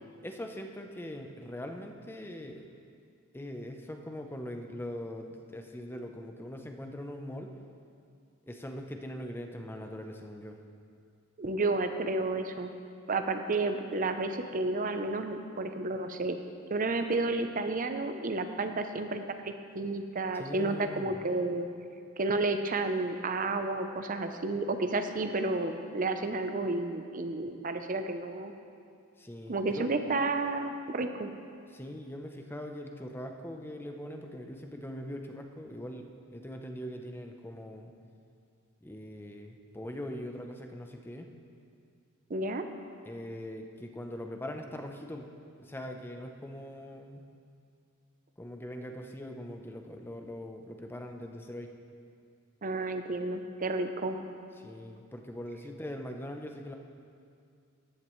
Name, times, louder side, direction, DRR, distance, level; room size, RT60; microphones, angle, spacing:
voice 1, 0.2-2.6 3.3-7.5 8.5-10.6 20.3-21.2 29.2-29.9 31.7-37.9 38.8-41.3 43.0-45.3 45.6-47.2 48.4-51.7 54.6-56.7, left 1 dB, 10° left, 4 dB, 0.6 m, -41 dB
voice 2, 11.4-12.7 13.1-16.4 16.7-21.7 22.2-28.5 29.5-31.3 42.3-42.7 52.6-54.2, right 2 dB, 40° right, 7 dB, 0.6 m, -31 dB
15.0 x 10.5 x 3.1 m, 2.4 s
head